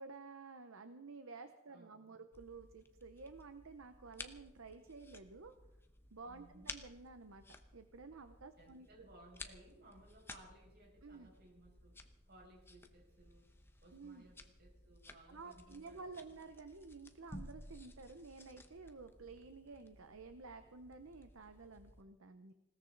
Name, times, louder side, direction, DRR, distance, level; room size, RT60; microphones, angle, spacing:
voice 1, 0.0-5.5 6.1-9.1 11.0-11.3 13.9-14.3 15.3-22.5, right 4 dB, 65° right, 9 dB, 0.8 m, -52 dB
voice 2, 1.7-2.1 6.3-6.7 8.6-13.5 13.8-16.4, right 1 dB, 50° right, -1 dB, 6.1 m, -62 dB
sound 1, 2.3-22.0, left 2 dB, 10° left, 0.9 m, -56 dB
20.0 x 17.5 x 4.0 m, 1.0 s
head